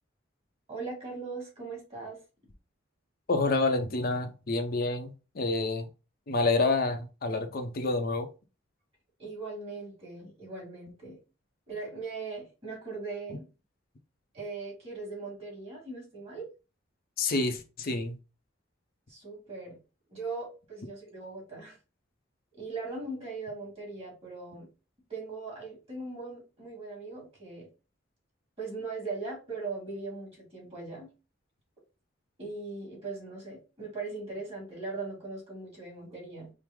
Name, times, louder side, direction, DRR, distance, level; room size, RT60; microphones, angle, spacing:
voice 1, 0.7-2.2 9.2-11.2 11.7-13.5 14.3-16.4 19.1-19.8 20.1-21.8 22.5-24.7 25.1-27.7 28.6-31.1 32.4-36.5, right 3 dB, 30° right, 2.0 m, -39 dB
voice 2, 3.3-5.9 6.3-8.3 17.2-18.2, left 3 dB, 50° left, 0.6 m, -28 dB
4.6 x 2.1 x 3.6 m
head